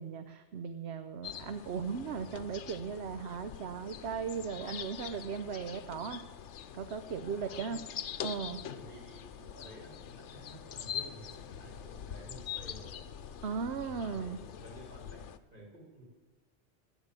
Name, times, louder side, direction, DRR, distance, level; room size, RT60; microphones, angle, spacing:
voice 1, 0.0-6.2 6.7-7.8 8.2-8.6 13.4-14.4, right 6 dB, 65° right, 9 dB, 1.0 m, -37 dB
sound 1, 1.2-15.4, left 9 dB, 80° left, 1.0 m, -44 dB
voice 2, 7.2-7.8 8.7-13.0 13.7-16.0, right 1 dB, 45° right, -2 dB, 3.8 m, -52 dB
13.0 x 9.4 x 8.2 m, 1.3 s
omnidirectional pair, 1.2 m